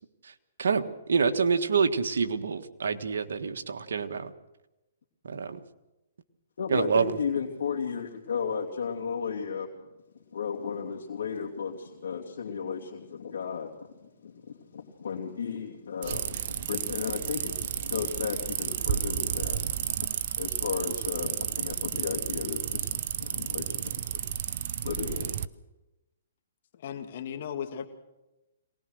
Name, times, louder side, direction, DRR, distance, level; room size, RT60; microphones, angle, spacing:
voice 1, 0.6-4.3 5.2-5.6 6.7-7.1, right 5 dB, 75° right, 7 dB, 1.6 m, -27 dB
voice 2, 6.6-9.7 10.3-13.7 14.0-20.1 20.4-24.2 24.8-25.3, left 6 dB, 70° left, -2 dB, 2.8 m, -34 dB
sound 1, 16.0-25.5, right 10 dB, 50° right, 0.8 m, -32 dB
voice 3, 26.7-27.9, left 8 dB, 55° left, 6 dB, 2.0 m, -36 dB
23.5 x 19.5 x 6.4 m, 1.0 s
hypercardioid pair, 145°, 0 cm